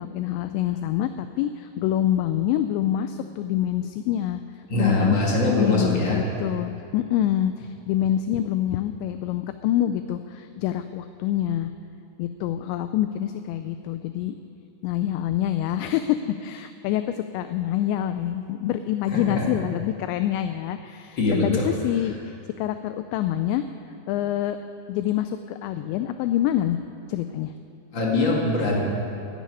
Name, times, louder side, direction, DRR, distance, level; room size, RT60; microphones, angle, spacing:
voice 1, 0.0-4.4 4.7-5.2 5.5-11.7 12.2-14.4 14.8-23.6 24.1-24.6 24.9-26.8 27.1-27.5, left 12 dB, 85° left, 9 dB, 2.6 m, -26 dB
voice 2, 4.7-6.2 19.1-19.4 21.2-21.7 27.9-28.8, left 2 dB, 40° left, -3 dB, 1.8 m, -23 dB
12.5 x 10.5 x 9.4 m, 2.6 s
omnidirectional pair, 5.5 m